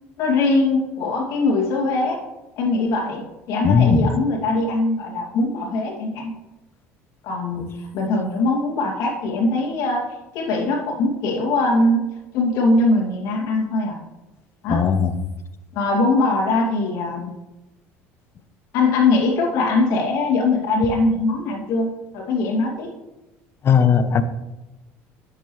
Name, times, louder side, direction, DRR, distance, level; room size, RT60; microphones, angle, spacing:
voice 1, 0.2-2.2 2.6-6.3 7.2-14.0 14.6-14.8 15.7-17.3 18.7-22.9, left 2 dB, 70° left, 0 dB, 2.5 m, -21 dB
voice 2, 3.6-4.1 14.7-15.1 23.6-24.2, left 6 dB, 40° left, 11 dB, 0.8 m, -17 dB
10.0 x 7.4 x 3.2 m, 1.0 s
supercardioid pair, 90°, 6 cm